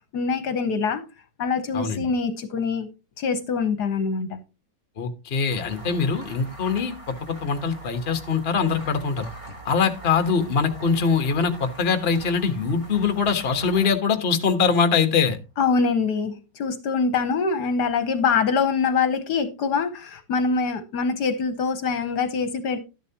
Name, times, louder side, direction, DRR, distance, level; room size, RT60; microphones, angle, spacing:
voice 1, 0.1-1.0 1.4-2.9 3.2-4.4 15.6-22.8, left 5 dB, 70° left, 1.5 m, -24 dB
voice 2, 1.7-2.0 5.0-9.3 9.6-15.4, left 5 dB, 40° left, 1.3 m, -23 dB
sound 1, 5.5-14.9, right 2 dB, 15° right, 2.6 m, -43 dB
12.0 x 10.5 x 2.9 m
omnidirectional pair, 1.9 m